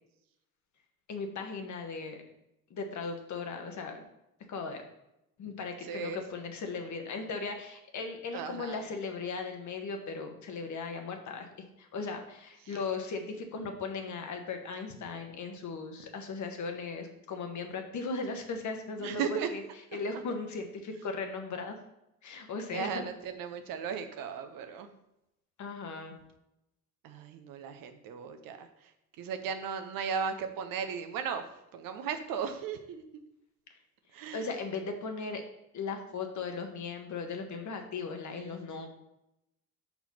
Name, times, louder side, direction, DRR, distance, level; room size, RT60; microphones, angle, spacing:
voice 1, 1.1-2.2 2.7-4.0 4.5-4.8 5.4-11.5 11.8-19.6 19.9-21.8 22.2-23.1 25.6-26.1 34.3-35.4 35.7-38.9, left 4 dB, 40° left, 4 dB, 1.4 m, -37 dB
voice 2, 5.8-6.2 8.3-8.8 19.0-19.5 22.7-24.9 27.0-28.9 29.2-31.4 31.7-33.0 34.1-34.5 38.3-38.9, right 7 dB, 50° right, 7 dB, 0.9 m, -36 dB
5.8 x 4.5 x 5.6 m, 0.87 s
figure-of-eight pair, 55°, 43 cm